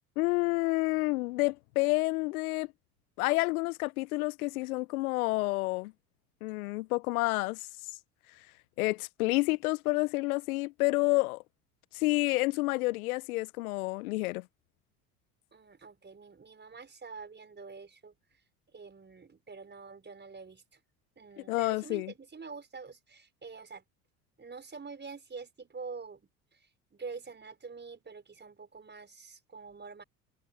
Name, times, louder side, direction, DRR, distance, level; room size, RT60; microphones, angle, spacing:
voice 1, 0.2-2.7 3.2-5.9 6.4-7.7 8.8-11.4 11.9-14.4 21.4-22.1, left 22 dB, 70° left, 1.0 m, -29 dB
voice 2, 15.5-18.1 18.7-20.6 21.2-23.8 24.4-26.3 26.9-30.0, right 4 dB, 25° right, 5.7 m, -46 dB
hypercardioid pair, 70°, 45 cm